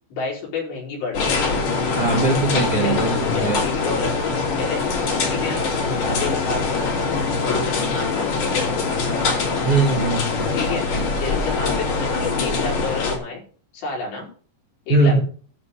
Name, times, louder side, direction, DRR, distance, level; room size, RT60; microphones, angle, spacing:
voice 1, 0.1-1.3 2.6-4.8 5.1-5.8 6.1-6.7 7.1-9.0 10.5-10.8 11.2-13.4 13.7-14.3 14.9-15.2, left 4 dB, 65° left, -2 dB, 6.0 m, -30 dB
sound 1, 1.1-13.2, left 4 dB, 50° left, 3.9 m, -23 dB
voice 2, 2.0-3.6 9.7-10.3 14.9-15.2, right 3 dB, 40° right, 0 dB, 2.3 m, -20 dB
12.5 x 4.3 x 8.2 m, 0.42 s
omnidirectional pair, 5.2 m